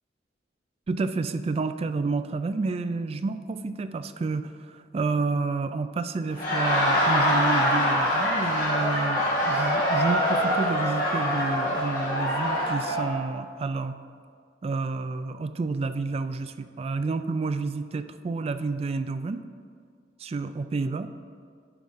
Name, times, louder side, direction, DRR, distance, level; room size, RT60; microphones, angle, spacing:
voice 1, 0.9-14.0 14.6-19.4 20.2-21.1, right 3 dB, 35° right, 11 dB, 0.3 m, -30 dB
Laughter, 6.2-13.1, equal, 50° left, 2.2 m, -24 dB
10.5 x 3.7 x 5.5 m, 2.1 s
head